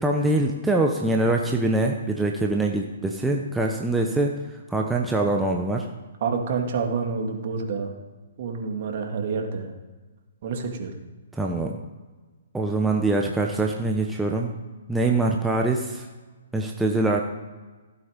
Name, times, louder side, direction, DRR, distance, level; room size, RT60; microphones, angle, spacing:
voice 1, 0.0-4.3 4.7-5.9 11.3-11.8 12.5-14.5 14.9-16.1 16.5-17.2, right 2 dB, 5° right, 1 dB, 1.0 m, -23 dB
voice 2, 6.2-7.9 8.4-9.7 10.4-10.9, right 5 dB, 50° right, 2 dB, 2.4 m, -28 dB
15.5 x 8.5 x 5.2 m, 1.3 s
hypercardioid pair, 135°, 0 cm